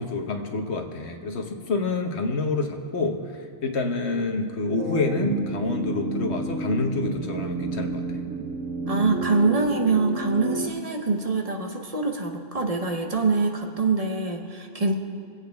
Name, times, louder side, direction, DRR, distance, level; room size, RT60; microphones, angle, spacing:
voice 1, 0.0-3.2 3.6-8.2, left 3 dB, 60° left, 4 dB, 1.3 m, -27 dB
sound 1, 4.8-10.7, right 2 dB, 70° right, 1.2 m, -30 dB
voice 2, 8.9-14.9, right 3 dB, 35° right, 3 dB, 0.9 m, -24 dB
23.5 x 8.3 x 3.5 m, 2.3 s
omnidirectional pair, 1.3 m